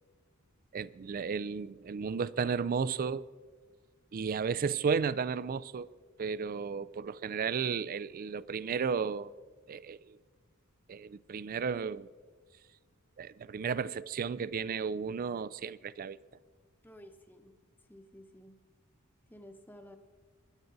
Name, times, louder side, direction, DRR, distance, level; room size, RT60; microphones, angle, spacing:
voice 1, 0.7-3.2 4.1-5.9 6.2-9.3 9.7-10.2 10.9-12.1 13.2-16.2, right 6 dB, 40° right, 0.4 m, -33 dB
voice 2, 16.8-17.5 17.9-18.6 19.3-20.0, equal, 10° left, 1.0 m, -53 dB
23.5 x 11.0 x 4.0 m
head